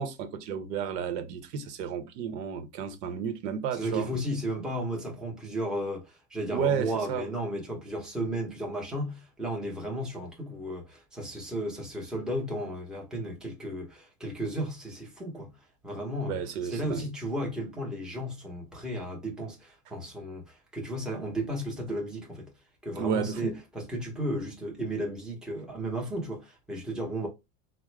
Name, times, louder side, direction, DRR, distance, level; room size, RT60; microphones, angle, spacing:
voice 1, 0.0-4.1 6.5-7.3 16.2-17.1 23.0-23.6, right 7 dB, 90° right, 0.9 m, -32 dB
voice 2, 3.7-15.6 15.8-22.5 22.8-27.3, right 1 dB, ahead, 0.7 m, -34 dB
3.6 x 2.1 x 3.1 m
supercardioid pair, 145°, 47 cm